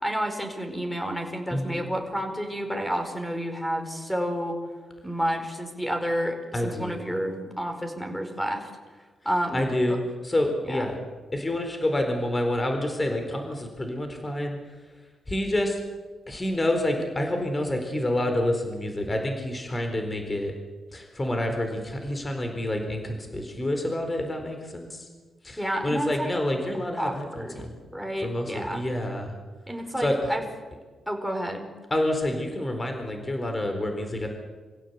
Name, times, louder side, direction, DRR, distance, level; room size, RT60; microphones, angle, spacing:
voice 1, 0.0-4.6 5.0-8.7 9.2-10.0 10.7-10.9 25.6-26.3 27.0-27.6 27.9-28.8 29.7-30.4 31.1-31.7, equal, 5° left, 5 dB, 4.8 m, -30 dB
voice 2, 1.5-1.9 6.5-7.1 9.5-11.0 11.3-14.6 15.3-15.8 16.3-20.5 20.9-25.1 25.4-27.7 28.2-29.3 30.0-30.3 31.9-34.3, left 1 dB, 25° left, 4 dB, 4.3 m, -28 dB
26.0 x 16.0 x 8.3 m, 1.4 s
cardioid pair, 75°, 0 cm